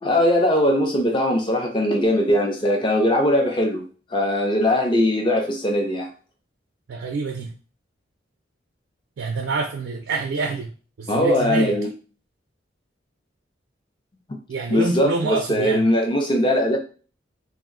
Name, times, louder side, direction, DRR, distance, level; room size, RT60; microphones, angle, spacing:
voice 1, 0.0-3.8 4.1-6.1 11.1-11.9 14.7-16.8, left 1 dB, 25° left, 0.5 m, -20 dB
voice 2, 6.9-7.5 9.2-10.7 11.0-11.8 14.5-15.9, right 4 dB, 85° right, 0.4 m, -26 dB
2.5 x 2.1 x 3.6 m
head